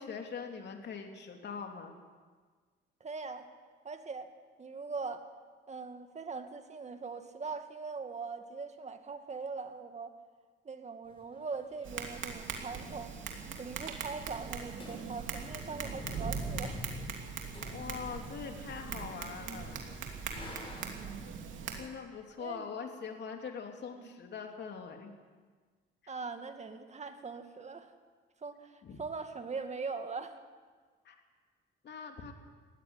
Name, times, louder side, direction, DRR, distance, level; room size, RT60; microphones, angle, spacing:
voice 1, 0.0-1.9 17.7-20.6 21.8-25.1 28.8-29.0 31.0-31.2 31.8-32.3, left 6 dB, 60° left, 3 dB, 3.2 m, -43 dB
voice 2, 3.0-3.5 3.8-4.3 4.6-5.2 5.7-10.1 10.6-13.1 13.6-16.9 20.6-20.9 22.4-22.7 23.9-24.1 26.1-27.9 28.4-30.4, right 4 dB, 35° right, 7 dB, 2.1 m, -41 dB
sound 1, 11.1-13.6 13.8-13.9 14.2-14.5 14.7-21.3, left 1 dB, 25° left, 5.9 m, -48 dB
Tap, 11.8-21.8, right 6 dB, 75° right, 3.0 m, -41 dB
19.0 x 15.0 x 9.8 m, 1.5 s
cardioid pair, 90°, 20 cm